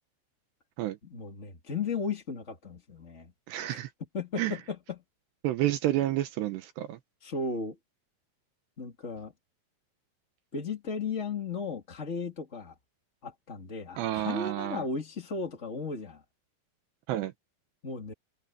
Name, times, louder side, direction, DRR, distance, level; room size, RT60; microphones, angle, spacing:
voice 1, 1.0-3.3 3.7-3.8 4.1-5.0 7.2-7.8 8.8-9.3 10.5-12.7 13.2-16.2 17.8-18.1, left 4 dB, 65° left, 0.7 m, -35 dB
voice 2, 3.5-3.9 4.4-4.6 5.4-7.0 14.0-14.8 17.1-17.3, right 14 dB, 75° right, 2.6 m, -30 dB
omnidirectional pair, 5.9 m